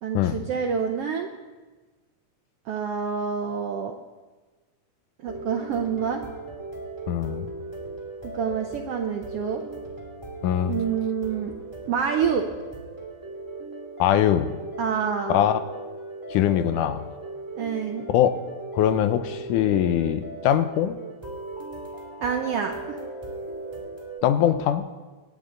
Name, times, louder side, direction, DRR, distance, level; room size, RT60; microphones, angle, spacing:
voice 1, 0.0-1.3 2.7-3.9 5.2-6.2 8.3-9.6 10.6-11.5 11.9-12.5 14.8-15.4 17.6-18.1 22.2-23.0, right 6 dB, 80° right, 4 dB, 1.4 m, -27 dB
sound 1, 5.3-24.2, right 2 dB, 5° right, 1.9 m, -38 dB
voice 2, 7.1-7.5 10.4-10.8 14.0-14.5 15.3-15.6 16.3-17.0 18.1-18.3 18.7-21.0 24.2-24.8, left 10 dB, 85° left, 10 dB, 2.3 m, -22 dB
26.0 x 9.2 x 3.8 m, 1.3 s
omnidirectional pair, 3.6 m